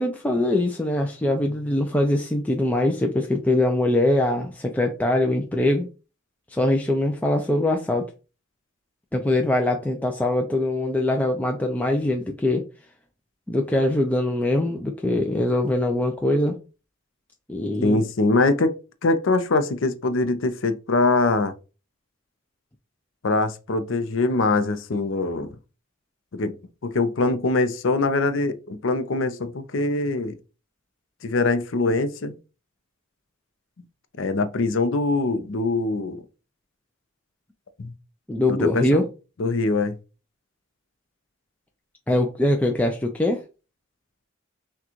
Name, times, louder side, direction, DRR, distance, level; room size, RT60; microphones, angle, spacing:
voice 1, 0.0-5.9 6.5-8.0 9.1-12.6 13.5-16.6 17.5-18.0 38.3-39.1 42.1-43.4, left 1 dB, 5° left, 0.3 m, -22 dB
voice 2, 17.8-18.7 19.0-21.5 23.2-25.5 26.3-26.5 26.8-30.4 31.2-32.4 34.2-36.2 37.8-37.9 38.5-39.0 39.4-39.9, left 3 dB, 65° left, 0.6 m, -23 dB
6.0 x 2.3 x 2.9 m
head